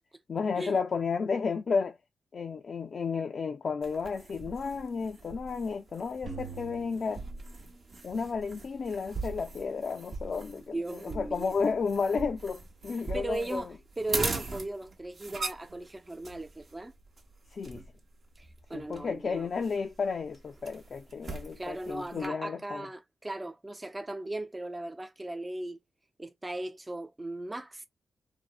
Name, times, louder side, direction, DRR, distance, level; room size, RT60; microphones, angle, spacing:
voice 1, 0.3-2.0 2.3-7.2 8.0-13.7 17.5-17.8 18.7-22.9, left 5 dB, 60° left, 0.3 m, -32 dB
sound 1, 3.8-22.3, right 3 dB, 55° right, 0.7 m, -41 dB
sound 2, 6.3-8.4, right 4 dB, 85° right, 1.2 m, -45 dB
voice 2, 10.7-11.5 13.1-16.9 18.4-19.5 21.6-25.8 26.2-27.9, right 2 dB, 25° right, 0.4 m, -37 dB
2.6 x 2.0 x 2.4 m
cardioid pair, 50°, 0 cm